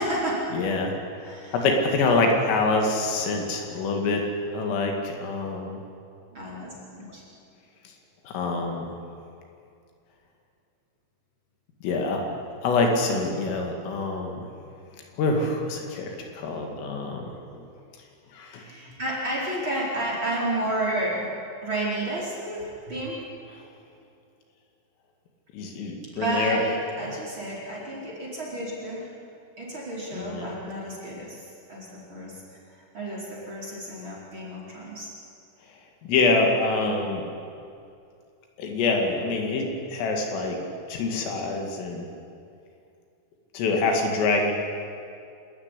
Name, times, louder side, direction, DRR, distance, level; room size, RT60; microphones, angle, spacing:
voice 1, 0.0-0.4 1.2-1.6 6.3-7.2 18.6-21.3 21.6-23.2 26.1-29.1 29.6-31.4 31.7-32.4 32.9-35.1, right 1 dB, 25° right, -4 dB, 4.6 m, -31 dB
voice 2, 0.5-4.3 4.5-5.8 8.3-8.9 11.8-12.3 12.6-14.4 15.2-17.7 18.3-18.7 25.5-26.6 27.0-27.2 30.1-30.5 36.0-37.3 38.6-40.6 40.9-42.1 43.5-44.5, left 3 dB, 75° left, 2 dB, 4.9 m, -26 dB
27.0 x 13.5 x 10.0 m, 2.4 s
omnidirectional pair, 5.9 m